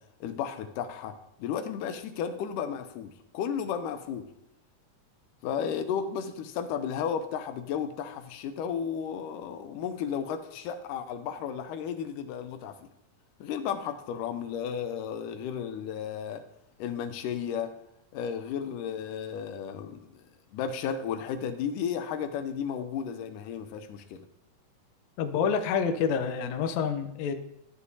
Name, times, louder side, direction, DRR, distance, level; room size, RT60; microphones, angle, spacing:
voice 1, 0.2-1.1 1.4-4.3 5.4-12.8 13.4-16.4 16.8-17.7 18.1-20.2 20.5-24.3, left 7 dB, 90° left, 8 dB, 2.3 m, -33 dB
voice 2, 25.2-27.3, left 6 dB, 75° left, 7 dB, 1.8 m, -28 dB
13.0 x 8.1 x 2.8 m, 0.79 s
omnidirectional pair, 3.6 m